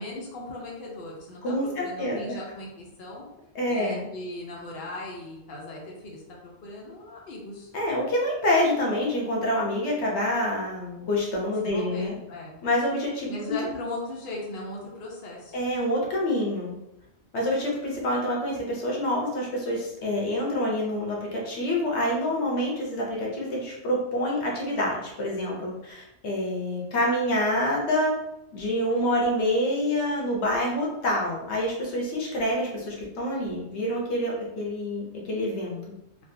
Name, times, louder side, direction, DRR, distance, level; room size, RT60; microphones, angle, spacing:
voice 1, 0.0-3.2 3.7-6.2 6.6-7.7 11.6-12.6 13.3-15.5, left 2 dB, 55° left, -3 dB, 0.9 m, -38 dB
voice 2, 1.4-2.4 3.5-4.1 7.7-12.1 12.6-13.5 15.5-16.8 17.3-28.1 28.5-35.8, left 1 dB, 75° left, -3 dB, 1.1 m, -27 dB
3.4 x 2.5 x 2.6 m, 0.89 s
omnidirectional pair, 1.2 m